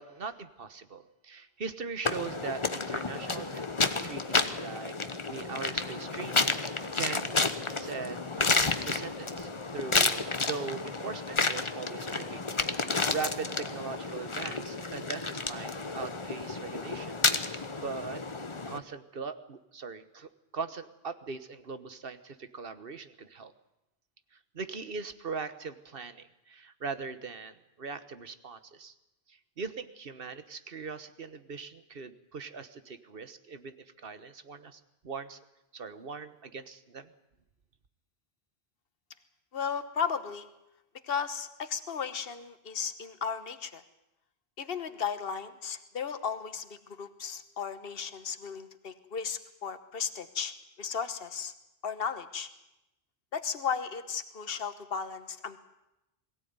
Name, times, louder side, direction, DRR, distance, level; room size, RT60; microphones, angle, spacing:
voice 1, 0.0-3.7 4.0-6.5 6.9-7.4 7.8-12.4 12.7-17.2 17.7-18.2 18.7-23.5 24.5-28.9 29.3-35.4 35.7-37.1, right 5 dB, 65° right, 12 dB, 1.4 m, -40 dB
sound 1, 2.0-18.8, left 3 dB, 30° left, 1.1 m, -31 dB
voice 2, 39.5-40.5 41.0-43.8 44.6-50.5 50.8-51.5 51.8-52.5 53.3-55.6, left 6 dB, 70° left, 10 dB, 1.4 m, -35 dB
22.5 x 16.5 x 9.5 m, 0.91 s
omnidirectional pair, 1.0 m